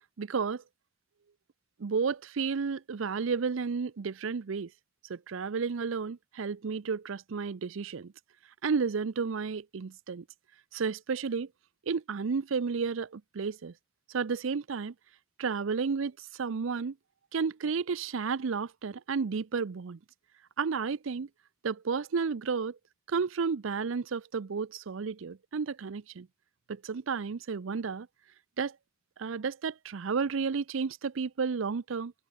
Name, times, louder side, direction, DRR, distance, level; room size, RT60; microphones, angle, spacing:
voice 1, 0.2-0.6 1.8-4.7 5.1-8.1 8.6-10.2 10.7-11.5 11.9-13.7 14.1-14.9 15.4-17.0 17.3-20.0 20.6-21.3 21.6-22.8 23.1-26.3 26.7-28.1 28.6-28.8 29.2-32.1, right 5 dB, 65° right, 0.5 m, -32 dB
head